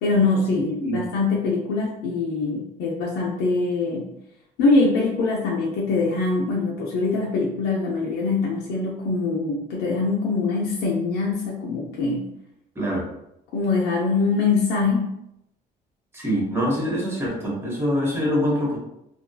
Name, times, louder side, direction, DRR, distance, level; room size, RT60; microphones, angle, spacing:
voice 1, 0.0-4.1 4.6-12.2 13.5-15.1, left 3 dB, 90° left, -4 dB, 0.5 m, -23 dB
voice 2, 12.7-13.1 16.1-18.8, equal, 15° right, -5 dB, 1.0 m, -24 dB
2.6 x 2.2 x 2.3 m, 0.82 s
cardioid pair, 110°, 17 cm